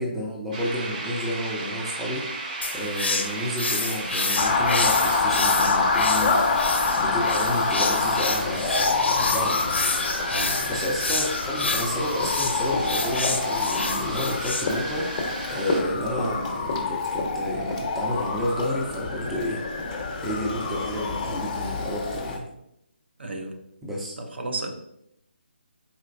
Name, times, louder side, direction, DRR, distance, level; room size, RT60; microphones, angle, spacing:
voice 1, 0.0-6.4 7.0-9.7 10.7-19.6 20.2-22.5 23.8-24.2, equal, 5° right, 0.5 m, -31 dB
sound 1, 0.5-15.8, right 2 dB, 40° right, 0.9 m, -36 dB
sound 2, 2.6-14.6, left 3 dB, 75° left, 0.6 m, -29 dB
Motor vehicle (road) / Siren, 4.4-22.4, left 4 dB, 30° left, 0.8 m, -26 dB
voice 2, 10.3-10.7 23.2-23.6 24.2-24.7, right 2 dB, 70° right, 0.7 m, -33 dB
4.3 x 4.2 x 2.6 m
figure-of-eight pair, 150°, 6 cm